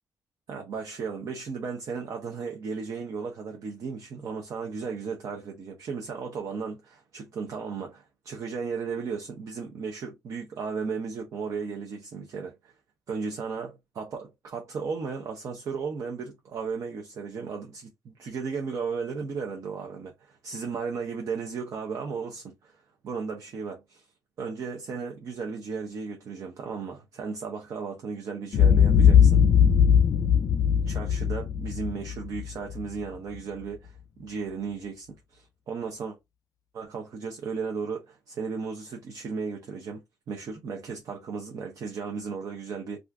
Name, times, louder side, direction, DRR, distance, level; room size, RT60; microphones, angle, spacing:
voice 1, 0.5-12.7 13.1-24.1 24.4-29.4 30.9-36.2 36.7-40.0 40.3-43.0, right 5 dB, 55° right, 0.6 m, -35 dB
Boom, 28.5-32.8, left 8 dB, 60° left, 0.4 m, -20 dB
2.4 x 2.4 x 3.3 m
wide cardioid pair, 155°, 7 cm